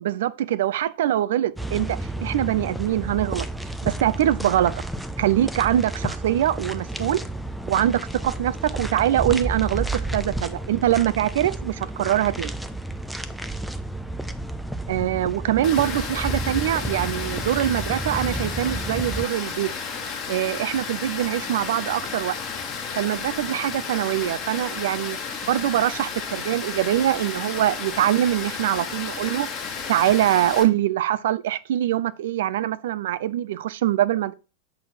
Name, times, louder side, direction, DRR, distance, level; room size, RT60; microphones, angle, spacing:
voice 1, 0.0-3.5 3.8-4.7 5.2-7.2 7.7-12.6 14.9-19.7 20.3-22.4 23.0-25.2 25.5-29.5 29.9-34.3, right 12 dB, 55° right, 0.4 m, -23 dB
sound 1, 1.6-19.2, right 1 dB, ahead, 0.5 m, -31 dB
Water, 15.6-30.6, left 5 dB, 30° left, 1.3 m, -33 dB
6.4 x 4.1 x 4.1 m
figure-of-eight pair, 90°, 0 cm